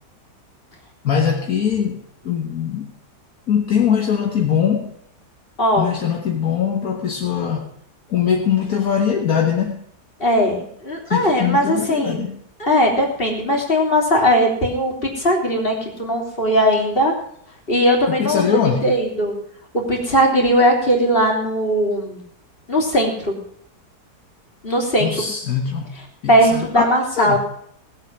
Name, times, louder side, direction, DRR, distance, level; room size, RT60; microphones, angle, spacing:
voice 1, 1.0-2.9 3.5-4.9 5.8-7.7 8.1-9.8 11.1-12.4 18.1-18.9 25.0-25.9 26.2-26.7 27.2-27.4, left 8 dB, 60° left, 1 dB, 1.8 m, -21 dB
voice 2, 5.6-5.9 10.2-12.2 12.6-17.1 17.7-19.4 19.7-22.2 22.7-23.4 24.6-25.1 26.3-27.4, equal, 35° left, -1 dB, 3.6 m, -18 dB
18.5 x 8.0 x 6.1 m, 0.69 s
omnidirectional pair, 1.8 m